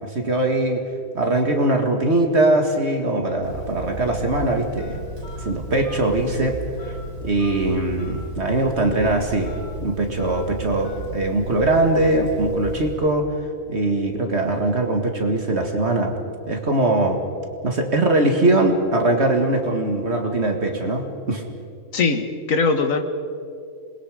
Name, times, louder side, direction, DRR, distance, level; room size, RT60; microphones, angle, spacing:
voice 1, 0.0-0.8 1.1-5.0 5.4-6.6 6.8-6.9 7.2-13.3 13.7-16.1 16.5-17.2 17.6-21.4, right 2 dB, 50° right, 3 dB, 2.1 m, -21 dB
Telephone, 3.4-13.1, right 1 dB, 70° right, 4.8 m, -34 dB
voice 2, 21.9-23.0, left 4 dB, 65° left, 7 dB, 1.9 m, -20 dB
27.0 x 21.5 x 5.0 m, 2.3 s
omnidirectional pair, 1.5 m